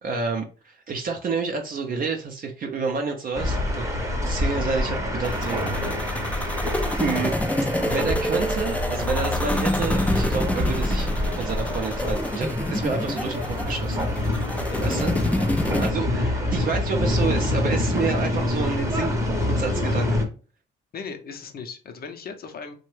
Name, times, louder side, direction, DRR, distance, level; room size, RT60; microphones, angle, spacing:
voice 1, 0.0-3.9 4.2-5.6 7.0-7.4 7.8-11.1 11.4-14.1 14.8-15.1 15.8-20.3, right 4 dB, 45° right, 3 dB, 0.5 m, -29 dB
sound 1, 3.3-20.2, left 1 dB, 15° right, 0.7 m, -26 dB
sound 2, 5.2-15.9, left 1 dB, 5° left, 0.4 m, -28 dB
voice 2, 14.7-15.0 20.9-22.7, left 5 dB, 50° left, 6 dB, 0.6 m, -37 dB
2.8 x 2.2 x 3.1 m, 0.37 s
cardioid pair, 90°, 20 cm